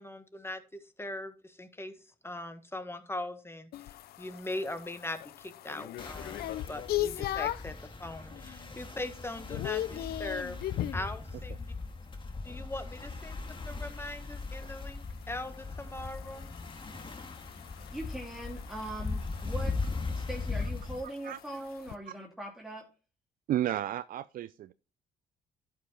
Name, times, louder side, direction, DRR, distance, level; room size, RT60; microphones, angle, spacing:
voice 1, 0.0-1.9 2.2-3.7 4.2-7.7 8.0-10.6 10.9-11.7 12.4-13.4 13.6-16.5, left 1 dB, 15° left, 1.6 m, -40 dB
sound 1, 3.7-7.8 8.3-8.7 9.0-11.1 13.6-22.0, left 13 dB, 70° left, 0.5 m, -39 dB
sound 2, 6.0-21.0, left 3 dB, 30° left, 1.9 m, -39 dB
voice 2, 17.9-19.8 20.1-22.8, right 1 dB, 5° right, 2.3 m, -41 dB
voice 3, 23.5-24.7, right 12 dB, 60° right, 0.4 m, -32 dB
11.0 x 5.7 x 4.4 m
supercardioid pair, 60°, 16 cm